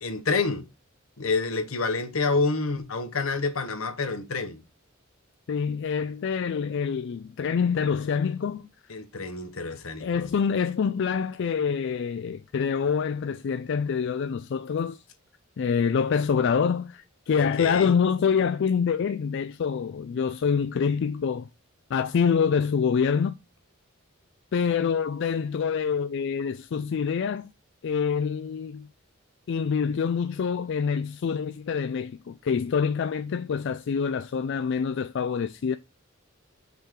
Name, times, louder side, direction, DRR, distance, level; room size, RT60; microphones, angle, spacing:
voice 1, 0.0-0.6 1.2-4.6 8.9-10.3 17.3-17.9, left 3 dB, 80° left, 1.2 m, -28 dB
voice 2, 5.5-8.7 10.0-15.0 15.6-21.5 21.9-23.4 24.5-27.5 27.8-28.9 29.5-35.8, left 6 dB, 60° left, 0.3 m, -26 dB
5.7 x 3.7 x 4.4 m
head